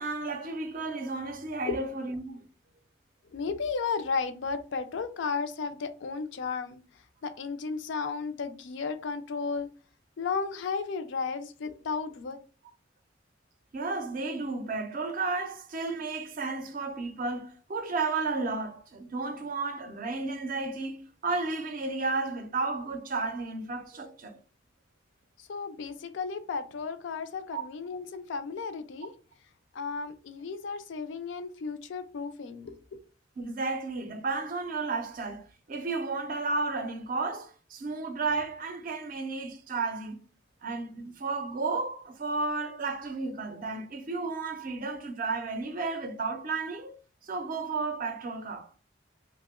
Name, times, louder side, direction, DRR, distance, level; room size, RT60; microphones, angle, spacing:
voice 1, 0.0-2.4 13.7-24.4 27.5-27.6 33.4-40.2 40.6-47.0 47.2-48.7, right 3 dB, 45° right, 0.4 m, -33 dB
voice 2, 3.3-6.8 7.2-9.7 10.2-12.4 25.5-29.1 29.7-32.7, left 5 dB, 70° left, 0.4 m, -34 dB
2.8 x 2.1 x 3.5 m
head